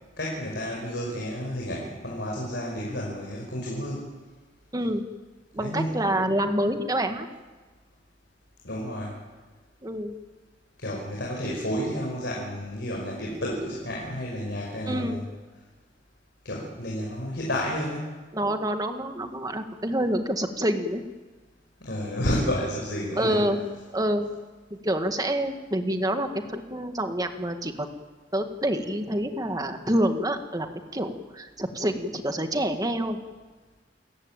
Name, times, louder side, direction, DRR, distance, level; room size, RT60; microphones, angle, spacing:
voice 1, 0.2-4.1 5.6-6.1 8.6-9.1 10.8-15.2 16.4-18.2 21.8-23.4, equal, 75° left, -3 dB, 5.5 m, -31 dB
voice 2, 4.7-5.1 5.5-7.3 9.8-10.1 11.5-11.6 14.9-15.2 18.3-21.0 23.2-24.3 24.7-27.9 28.3-30.7 30.9-33.2, right 1 dB, 20° right, 6 dB, 1.8 m, -27 dB
28.5 x 14.5 x 9.0 m, 1.3 s
head